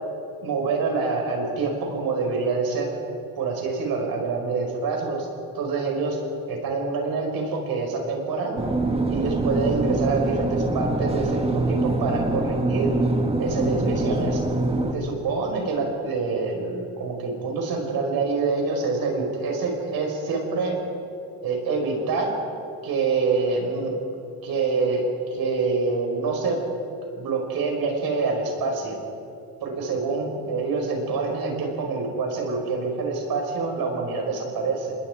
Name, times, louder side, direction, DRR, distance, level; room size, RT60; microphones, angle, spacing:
voice 1, 0.4-2.9 3.4-5.3 5.5-6.2 6.5-8.6 9.1-12.9 13.4-14.4 14.9-20.8 21.4-22.3 22.8-23.9 24.4-25.0 25.3-26.6 27.2-29.0 29.6-35.0, right 4 dB, 60° right, 2 dB, 5.3 m, -26 dB
sound 1, 8.6-14.9, right 2 dB, 15° right, 1.6 m, -24 dB
27.0 x 21.0 x 4.9 m, 2.7 s
cardioid pair, 125°, 39 cm